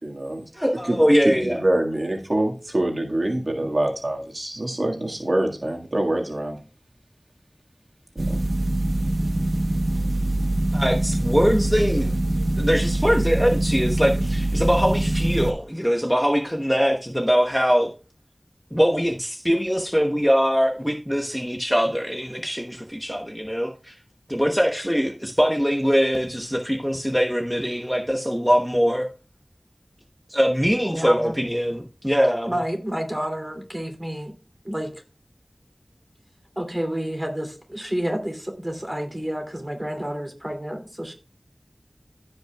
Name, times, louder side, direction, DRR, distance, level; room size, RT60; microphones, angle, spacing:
voice 1, 0.0-0.4 0.8-6.6 8.2-8.4, right 1 dB, 60° right, 1.8 m, -25 dB
voice 2, 0.5-1.6 10.7-12.1 12.6-17.9 18.7-24.0 24.3-29.1 30.3-32.6, equal, ahead, 1.0 m, -22 dB
sound 1, 8.2-15.5, right 1 dB, 80° right, 1.0 m, -23 dB
voice 3, 30.8-31.3 32.5-34.3 34.6-35.0 36.6-41.1, equal, 20° right, 2.7 m, -29 dB
15.5 x 5.4 x 2.3 m
wide cardioid pair, 45°, 0 cm